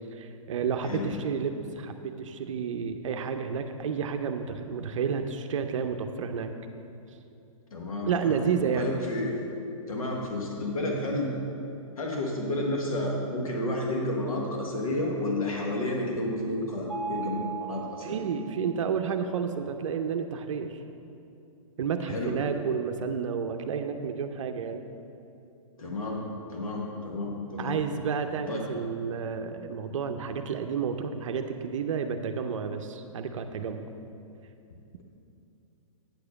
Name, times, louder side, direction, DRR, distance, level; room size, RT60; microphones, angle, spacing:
voice 1, 0.1-6.5 8.1-8.9 18.0-20.7 21.8-24.8 27.6-33.9, right 6 dB, 65° right, 6 dB, 0.6 m, -31 dB
voice 2, 0.8-1.1 7.7-9.3 9.9-11.3 12.0-18.2 22.1-22.4 25.8-26.2 26.5-27.8 28.5-28.7, left 1 dB, 85° left, -1 dB, 1.5 m, -31 dB
Mallet percussion, 16.9-18.9, right 7 dB, ahead, 0.9 m, -38 dB
9.2 x 4.8 x 6.4 m, 2.7 s
hypercardioid pair, 145°, 18 cm